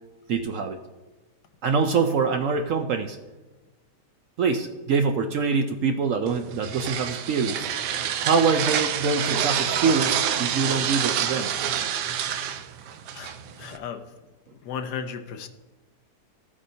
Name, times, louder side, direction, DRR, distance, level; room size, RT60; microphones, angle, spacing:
voice 1, 0.3-0.8 1.6-3.2 4.4-7.7 8.2-11.5, right 5 dB, 65° right, 6 dB, 0.8 m, -24 dB
sound 1, 6.3-13.8, right 9 dB, 90° right, 1.2 m, -27 dB
voice 2, 13.1-14.0 14.6-15.5, left 7 dB, 75° left, 7 dB, 1.3 m, -35 dB
14.0 x 8.5 x 2.7 m, 1.1 s
omnidirectional pair, 1.8 m